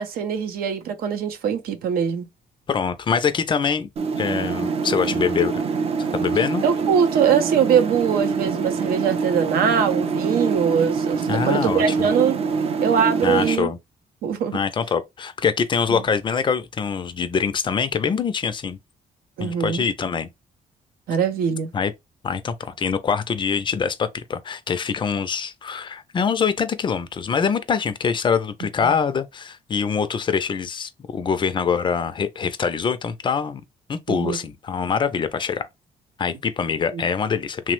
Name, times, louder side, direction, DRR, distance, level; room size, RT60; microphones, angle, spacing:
voice 1, 0.0-2.3 6.6-12.4 12.8-13.7 14.2-14.6 15.9-16.0 19.4-19.8 21.1-21.7 34.1-34.4 36.9-37.0, right 7 dB, 85° right, 0.6 m, -22 dB
voice 2, 2.7-3.9 4.2-5.6 6.1-6.6 11.3-12.1 13.2-13.8 14.5-18.8 19.4-20.3 21.7-21.9 22.2-33.6 33.9-35.7 36.2-37.7, left 6 dB, 30° left, 0.3 m, -24 dB
sound 1, 4.0-13.6, right 5 dB, 40° right, 0.4 m, -25 dB
3.0 x 2.0 x 3.0 m
cardioid pair, 125°, 15 cm